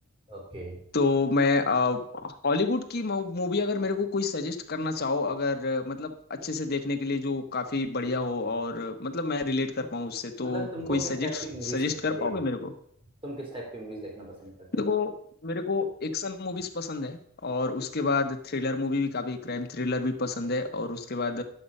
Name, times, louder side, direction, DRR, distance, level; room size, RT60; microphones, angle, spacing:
voice 1, 0.3-0.8 10.4-11.8 12.1-12.3 13.2-14.5, right 1 dB, 25° right, -1 dB, 2.9 m, -37 dB
voice 2, 0.9-12.7 14.8-15.1 15.4-21.4, left 3 dB, 50° left, 5 dB, 1.1 m, -29 dB
10.0 x 7.8 x 5.4 m, 0.68 s
head